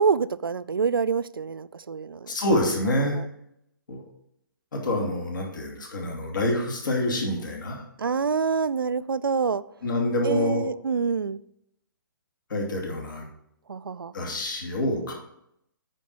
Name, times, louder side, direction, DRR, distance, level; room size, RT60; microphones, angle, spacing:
voice 1, 0.0-2.3 3.1-3.2 8.0-9.6 10.2-11.4 13.7-14.1, right 5 dB, 75° right, 16 dB, 0.4 m, -26 dB
voice 2, 2.3-3.2 3.9-4.0 4.7-7.8 9.8-10.6 12.5-13.2 14.1-15.1, left 1 dB, 60° left, 0 dB, 2.8 m, -26 dB
9.6 x 4.6 x 5.4 m, 0.77 s
figure-of-eight pair, 130°, 12 cm